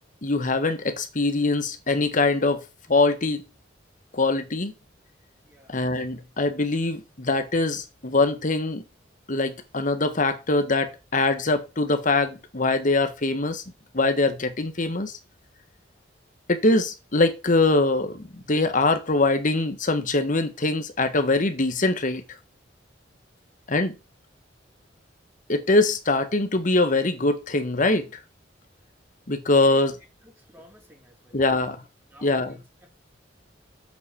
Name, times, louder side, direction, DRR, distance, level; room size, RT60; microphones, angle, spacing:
voice 1, 0.2-2.6 2.9-3.4 4.1-4.7 5.7-8.8 9.3-13.6 13.9-15.2 16.5-22.2 23.7-23.9 25.5-28.1 29.3-30.0 31.3-31.8 32.2-32.6, left 2 dB, 45° left, 1.4 m, -23 dB
voice 2, 5.4-5.8 29.7-29.8 30.5-31.6 32.1-32.9, equal, 10° right, 3.2 m, -51 dB
7.8 x 7.1 x 4.4 m
head